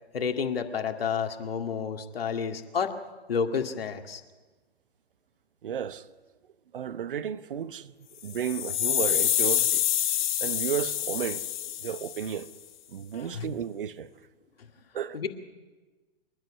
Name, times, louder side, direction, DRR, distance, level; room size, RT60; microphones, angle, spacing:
voice 1, 0.1-3.0 3.3-4.2 13.1-13.5 15.1-15.3, left 6 dB, 65° left, 2.1 m, -30 dB
voice 2, 5.6-6.1 6.7-7.9 8.2-9.8 10.4-12.5 12.9-14.1 14.9-15.3, right 9 dB, 55° right, 1.0 m, -33 dB
sound 1, 8.2-12.4, left 12 dB, 45° left, 1.2 m, -27 dB
26.0 x 11.5 x 9.9 m
figure-of-eight pair, 120°, 32 cm